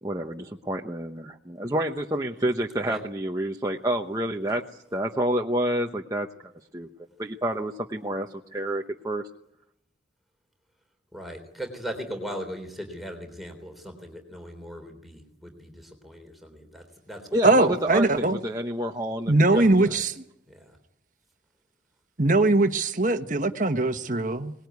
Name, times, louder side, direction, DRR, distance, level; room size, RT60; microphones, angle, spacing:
voice 1, 0.0-4.6 4.9-6.3 6.7-6.9 7.2-9.2 17.3-20.0, right 1 dB, 20° right, 1.0 m, -29 dB
voice 2, 11.1-17.2 17.5-18.2 19.4-20.0 20.5-20.7, equal, ahead, 3.5 m, -39 dB
voice 3, 17.4-18.4 19.3-20.1 22.2-24.5, right 2 dB, 40° right, 1.4 m, -21 dB
24.0 x 20.0 x 9.5 m
head